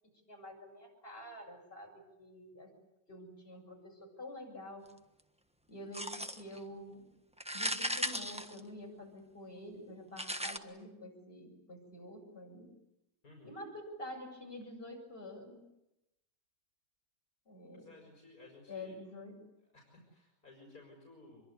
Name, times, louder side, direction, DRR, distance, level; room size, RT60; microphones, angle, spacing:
voice 1, 0.3-2.7 3.1-4.9 5.7-7.0 7.5-12.7 13.4-15.6 17.5-18.0 18.7-19.4, left 1 dB, 35° left, 1 dB, 7.6 m, -48 dB
sound 1, 5.9-6.6 7.4-9.1 10.2-10.6, equal, 5° right, 1.1 m, -37 dB
voice 2, 13.2-13.6 17.8-19.0 19.7-21.4, left 3 dB, 55° left, 0 dB, 5.6 m, -56 dB
25.5 x 23.0 x 9.6 m, 0.89 s
omnidirectional pair, 1.8 m